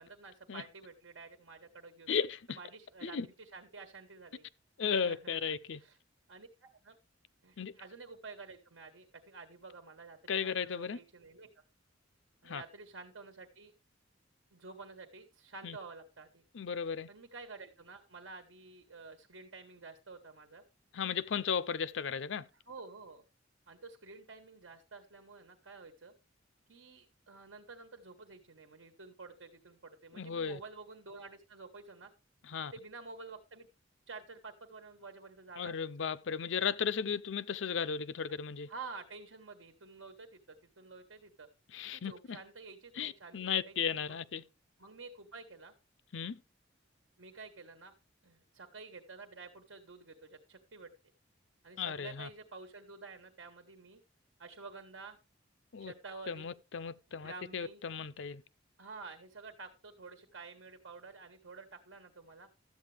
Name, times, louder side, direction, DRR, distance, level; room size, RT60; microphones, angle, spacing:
voice 1, 0.0-2.1 2.5-4.4 5.0-5.4 5.8-6.0 6.3-7.0 7.4-11.5 12.4-13.7 14.5-16.4 17.1-20.6 22.7-23.2 23.7-26.1 26.7-32.1 32.7-33.7 34.1-35.9 38.7-41.5 41.8-44.2 44.8-45.7 47.2-47.9 48.2-50.9 51.6-54.0 54.4-55.2 55.8-56.5 57.1-57.8 58.8-62.5, right 4 dB, 90° right, 1.4 m, -50 dB
voice 2, 2.1-2.6 3.0-3.3 4.8-5.8 7.6-7.7 10.3-11.0 12.4-12.6 15.6-15.8 16.5-17.1 20.9-22.5 30.1-30.6 32.4-32.7 35.6-38.7 41.7-42.4 43.0-44.4 46.1-46.4 51.8-52.3 55.7-55.9 56.3-58.4, left 6 dB, 70° left, 0.5 m, -35 dB
12.5 x 8.2 x 3.3 m
head